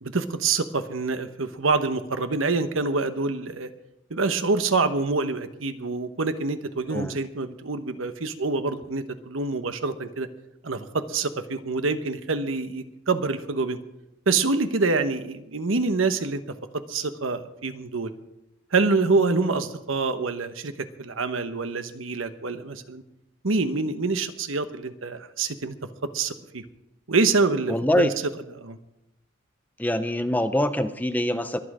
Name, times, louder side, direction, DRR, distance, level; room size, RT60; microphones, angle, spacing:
voice 1, 0.0-3.7 4.1-10.3 10.6-13.8 14.3-16.4 16.9-18.1 18.7-23.0 23.4-25.7 26.1-26.6 27.1-28.1 28.6-28.8, right 3 dB, 80° right, 10 dB, 1.1 m, -26 dB
voice 2, 27.7-28.2 29.8-31.6, left 1 dB, 10° left, 9 dB, 0.6 m, -24 dB
23.0 x 8.8 x 4.9 m, 0.87 s
head